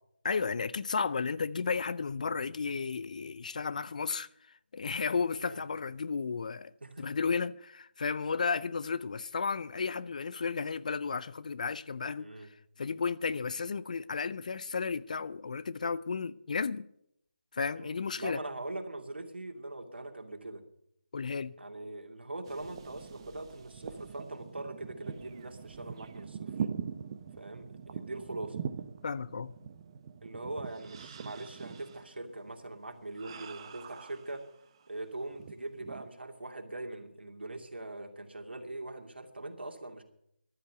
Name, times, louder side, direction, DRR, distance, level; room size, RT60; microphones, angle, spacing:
voice 1, 0.2-4.3 4.7-6.7 7.0-12.3 12.8-16.9 17.5-18.4 21.1-21.6 29.0-29.5, left 5 dB, 45° left, 0.5 m, -33 dB
voice 2, 12.2-12.5 17.8-20.6 21.6-26.5 27.4-28.6 30.2-34.4 34.9-40.0, right 2 dB, 75° right, 2.6 m, -42 dB
sound 1, 22.4-34.9 35.3-36.1, right 7 dB, 25° right, 0.8 m, -43 dB
14.0 x 11.5 x 6.8 m
figure-of-eight pair, 160°, 6 cm